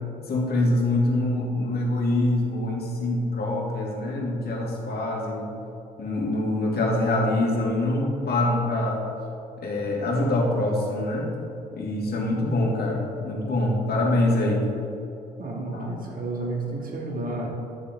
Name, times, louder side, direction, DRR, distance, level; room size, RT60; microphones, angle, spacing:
voice 1, 0.3-5.5 6.0-9.0 9.6-11.3 11.8-14.7 15.7-15.9, left 1 dB, 50° left, -2 dB, 2.3 m, -24 dB
voice 2, 15.4-17.5, right 2 dB, 45° right, -2 dB, 2.3 m, -31 dB
11.5 x 6.9 x 3.6 m, 2.6 s
hypercardioid pair, 50°, 21 cm